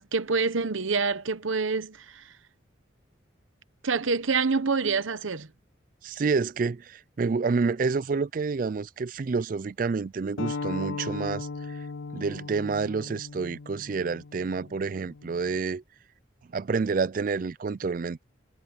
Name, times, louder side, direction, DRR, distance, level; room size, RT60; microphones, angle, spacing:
voice 1, 0.0-2.2 3.8-5.5, right 4 dB, 85° right, 1.0 m, -26 dB
voice 2, 6.0-11.8 12.1-15.8 16.5-18.2, right 4 dB, 45° right, 0.4 m, -28 dB
sound 1, 10.4-15.6, left 4 dB, 80° left, 0.5 m, -37 dB
head